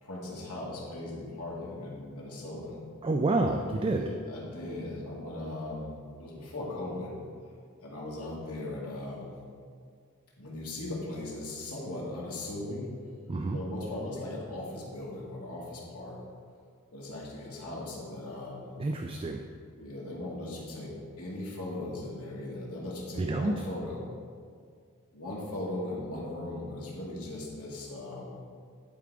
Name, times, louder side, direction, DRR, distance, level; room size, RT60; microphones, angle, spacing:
voice 1, 0.0-2.8 3.9-7.1 7.8-9.4 10.4-12.9 13.5-16.2 16.9-18.7 19.7-24.1 25.1-28.4, left 1 dB, 80° left, -5 dB, 2.0 m, -38 dB
voice 2, 3.0-4.0 13.3-13.6 18.8-19.4 23.2-23.5, right 2 dB, 25° right, 4 dB, 0.3 m, -28 dB
11.0 x 3.8 x 4.7 m, 2.1 s
head